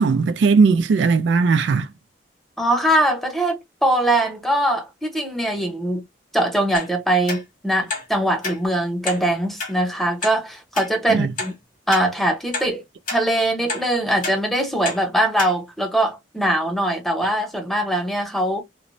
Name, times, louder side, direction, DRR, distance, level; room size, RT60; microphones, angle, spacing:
voice 1, 0.0-1.9 11.1-11.3, right 4 dB, 80° right, 0.4 m, -17 dB
voice 2, 2.6-6.0 6.3-11.5 11.9-12.8 13.1-18.6, right 1 dB, ahead, 0.6 m, -22 dB
sound 1, 6.7-6.9 7.3-7.4 7.9-8.1 8.4-8.6 9.0-9.2 9.6-9.7 10.2-10.3 10.7-10.9 11.4-11.5 11.9-12.1 12.5-12.7 13.1-13.2 13.7-13.8 14.2-14.4 14.8-15.0 15.4-15.5 16.0-16.1, left 3 dB, 45° left, 1.5 m, -28 dB
3.0 x 2.0 x 2.5 m
head